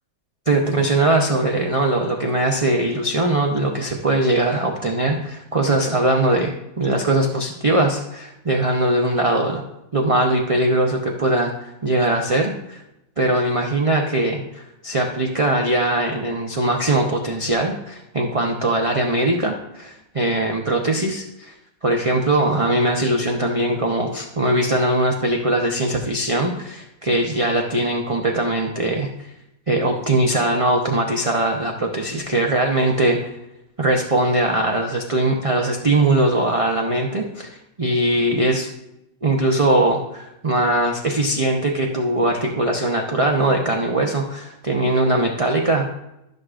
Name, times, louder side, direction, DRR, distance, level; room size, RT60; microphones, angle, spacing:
voice 1, 0.5-9.6 9.9-12.8 13.2-21.5 21.8-29.1 29.7-33.3 33.8-38.7 39.2-45.9, right 1 dB, 50° right, 0 dB, 0.4 m, -21 dB
13.0 x 6.4 x 2.5 m, 0.87 s
omnidirectional pair, 1.9 m